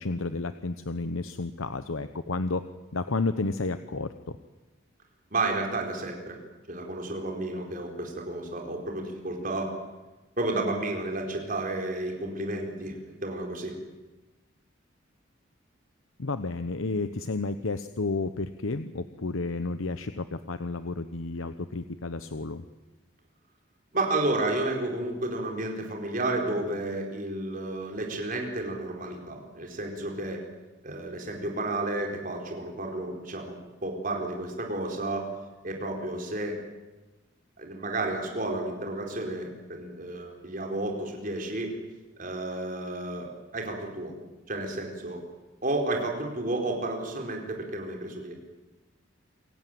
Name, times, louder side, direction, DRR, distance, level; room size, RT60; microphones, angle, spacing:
voice 1, 0.0-2.6 2.9-4.4 16.2-22.6, left 3 dB, 85° left, 10 dB, 0.9 m, -31 dB
voice 2, 5.3-6.4 6.7-9.7 10.4-13.8 23.9-30.4 30.8-35.3 35.6-36.6 37.6-41.8 42.2-44.1 44.5-45.2 45.6-48.3, right 2 dB, 40° right, 1 dB, 4.6 m, -31 dB
28.0 x 17.0 x 9.4 m, 1.2 s
head